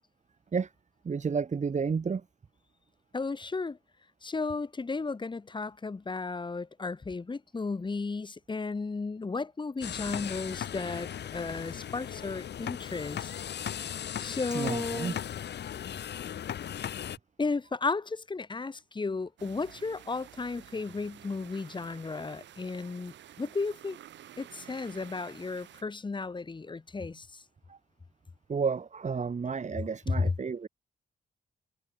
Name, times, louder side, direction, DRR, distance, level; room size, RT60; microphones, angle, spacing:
voice 1, 1.0-2.2 14.5-15.1 27.7-27.8 28.5-30.7, right 5 dB, 40° right, 3.2 m, -31 dB
voice 2, 3.1-3.8 4.2-13.3 14.2-15.2 17.4-24.0 24.4-27.4 30.1-30.3, left 4 dB, 25° left, 1.6 m, -34 dB
sound 1, 9.8-17.2, left 9 dB, 70° left, 2.5 m, -37 dB
sound 2, 19.4-25.8, right 11 dB, 90° right, 5.3 m, -51 dB
cardioid pair, 100°, 18 cm